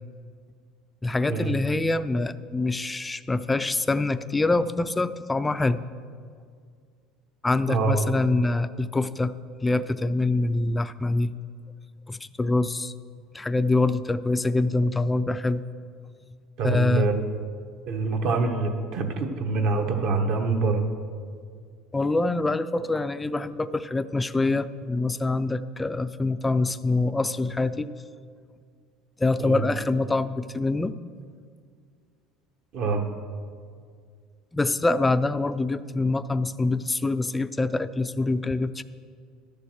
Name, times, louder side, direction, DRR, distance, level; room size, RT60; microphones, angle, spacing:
voice 1, 1.0-5.8 7.4-9.3 9.6-11.3 12.1-12.9 13.3-15.6 16.6-17.1 21.9-27.9 29.2-30.9 34.5-38.8, left 2 dB, 10° left, 12 dB, 0.3 m, -25 dB
voice 2, 7.7-8.1 16.6-17.2 17.9-20.9 29.4-29.6 32.7-33.0, right 3 dB, 55° right, 4 dB, 1.0 m, -25 dB
12.0 x 6.9 x 6.5 m, 2.1 s
cardioid pair, 145°, 0 cm